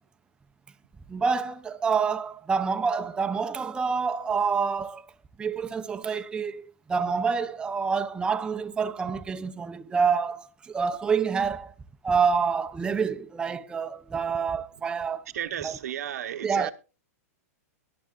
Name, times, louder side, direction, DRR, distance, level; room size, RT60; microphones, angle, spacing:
voice 1, 1.1-5.1 5.4-11.7 12.0-15.3 15.6-15.8 16.4-16.7, right 5 dB, 10° right, 0.5 m, -27 dB
voice 2, 15.3-16.7, right 10 dB, 80° right, 1.0 m, -33 dB
22.5 x 7.6 x 2.4 m
hypercardioid pair, 140°, 8 cm